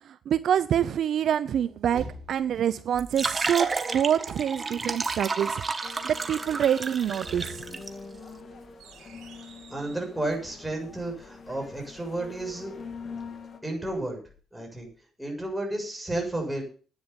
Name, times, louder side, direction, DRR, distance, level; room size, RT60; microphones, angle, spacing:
voice 1, 0.1-7.6, right 9 dB, 65° right, 15 dB, 0.6 m, -26 dB
sound 1, 1.3-2.8 6.9-10.1, right 4 dB, 85° right, 3.5 m, -46 dB
sound 2, 2.9-7.9, right 4 dB, 30° right, 1.7 m, -31 dB
sound 3, 5.8-13.6, left 5 dB, 45° left, 1.8 m, -44 dB
voice 2, 9.7-12.7 13.6-14.2 14.5-14.9 15.2-16.6, right 1 dB, 5° right, 1 dB, 6.8 m, -32 dB
11.5 x 9.7 x 6.9 m, 0.40 s
cardioid pair, 90°, 0 cm